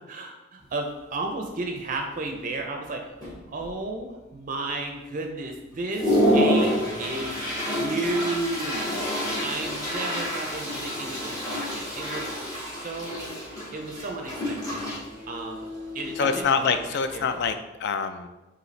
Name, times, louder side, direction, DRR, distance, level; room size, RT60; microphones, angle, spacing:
voice 1, 0.1-3.2 3.5-7.3 7.6-9.0 9.4-13.3 13.7-14.8 15.3-15.7 15.9-16.8 17.1-17.3, right 2 dB, 45° right, 3 dB, 0.5 m, -33 dB
Toilet flush, 0.6-0.7 1.2-1.5 1.8-2.3 2.8-2.9 3.2-4.0 4.4-4.5 5.1-5.2 5.6-17.6, equal, 20° left, 1.3 m, -28 dB
sound 1, 12.1-16.4, left 3 dB, 80° left, 1.3 m, -43 dB
voice 2, 16.2-18.3, left 5 dB, 60° left, 9 dB, 0.4 m, -25 dB
5.1 x 2.8 x 3.2 m, 1.1 s
head